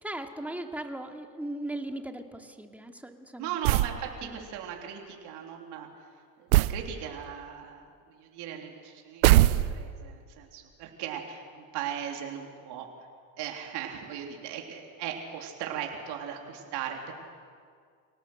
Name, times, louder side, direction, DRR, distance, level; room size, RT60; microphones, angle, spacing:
voice 1, 0.0-3.6 4.2-4.4, right 1 dB, 5° right, 4 dB, 2.4 m, -38 dB
voice 2, 3.4-5.9 6.4-12.9 13.4-17.1, right 9 dB, 70° right, 1 dB, 3.4 m, -38 dB
sound 1, 3.6-4.0 6.5-6.8 9.2-10.0, right 17 dB, 90° right, 0.8 m, -21 dB
27.0 x 18.5 x 7.9 m, 2.1 s
supercardioid pair, 85°, 42 cm